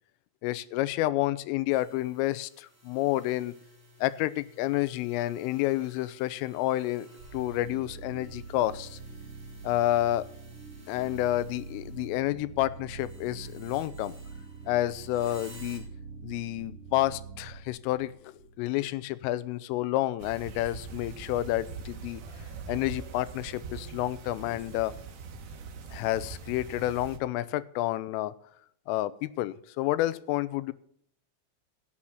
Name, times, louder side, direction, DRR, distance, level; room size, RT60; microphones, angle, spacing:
voice 1, 0.4-3.5 4.0-9.0 9.6-10.3 10.9-14.2 14.7-15.8 16.2-22.2 22.7-24.9 25.9-28.3 28.9-30.7, left 15 dB, 85° left, 16 dB, 3.2 m, -29 dB
sound 1, 1.7-12.4 12.7-15.8, equal, 5° right, 2.7 m, -55 dB
sound 2, 7.2-19.0, right 5 dB, 40° right, 4.4 m, -45 dB
sound 3, 20.2-27.2, right 5 dB, 65° right, 2.1 m, -42 dB
16.0 x 7.4 x 5.8 m, 0.64 s
omnidirectional pair, 5.8 m